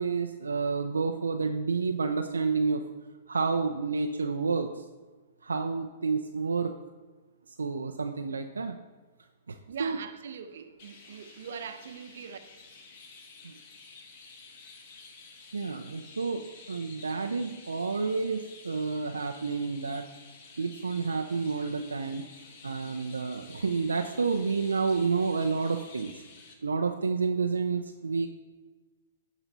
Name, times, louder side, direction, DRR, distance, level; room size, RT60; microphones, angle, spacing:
voice 1, 0.0-2.9 3.3-4.7 5.4-6.7 7.6-8.8 9.5-10.0 13.4-13.5 15.5-16.4 16.7-20.0 20.6-22.2 22.6-26.2 26.6-28.3, right 4 dB, 90° right, 0.5 m, -29 dB
voice 2, 9.7-12.4, right 7 dB, 65° right, 0.9 m, -42 dB
Chirp tweet, 10.8-26.5, left 4 dB, 50° left, 1.5 m, -51 dB
11.5 x 4.0 x 5.4 m
hypercardioid pair, 120°, 0 cm